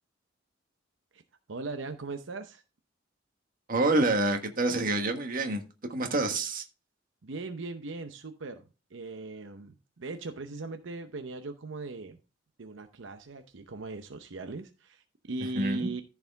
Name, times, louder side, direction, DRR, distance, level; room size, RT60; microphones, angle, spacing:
voice 1, 1.5-2.6 7.2-8.6 8.9-12.2 12.6-16.0, right 3 dB, 85° right, 7 dB, 0.7 m, -39 dB
voice 2, 3.7-5.6 5.9-6.6 15.5-15.9, right 2 dB, 50° right, 5 dB, 1.5 m, -27 dB
14.0 x 4.8 x 3.5 m, 0.31 s
head